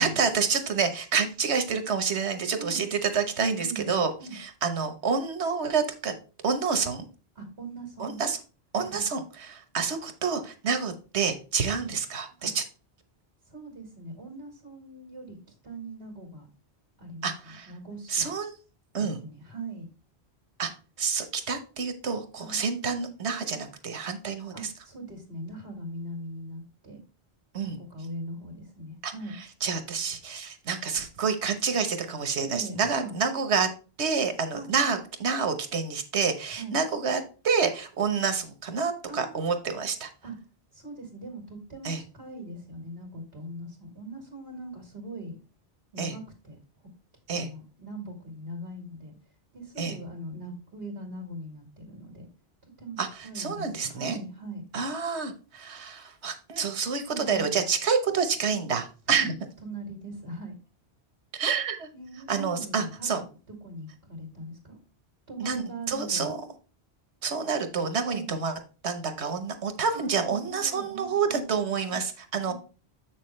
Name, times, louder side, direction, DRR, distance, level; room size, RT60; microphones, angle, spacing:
voice 1, 0.0-6.1 6.4-7.1 8.0-8.4 8.7-12.6 17.2-17.7 18.1-18.5 18.9-19.2 20.6-20.7 21.0-24.5 27.5-27.8 29.0-29.1 29.6-33.7 34.0-40.1 41.8-42.0 46.0-46.1 47.3-47.5 49.8-50.0 53.0-53.1 53.3-54.2 54.7-59.3 61.3-61.9 62.3-63.2 65.4-66.4 67.2-68.5 68.8-72.5, right 5 dB, 85° right, 8 dB, 1.4 m, -28 dB
voice 2, 3.6-4.4 7.4-8.2 8.8-9.1 11.7-11.9 12.4-12.5 13.5-15.4 15.6-16.5 17.0-18.3 19.0-19.9 22.4-22.6 24.5-27.0 27.6-29.4 32.3-33.2 34.5-34.7 36.6-36.8 39.0-39.5 40.2-40.4 40.7-45.4 45.9-46.6 47.3-49.1 49.5-52.3 52.8-53.0 53.2-54.7 57.1-57.6 59.1-59.3 59.6-60.6 61.9-63.2 63.6-64.8 65.3-66.3 68.1-68.4 69.9-71.5 71.9-72.0 72.4-72.5, right 1 dB, 65° right, 0 dB, 2.2 m, -40 dB
7.5 x 6.3 x 3.2 m, 0.35 s
omnidirectional pair, 1.1 m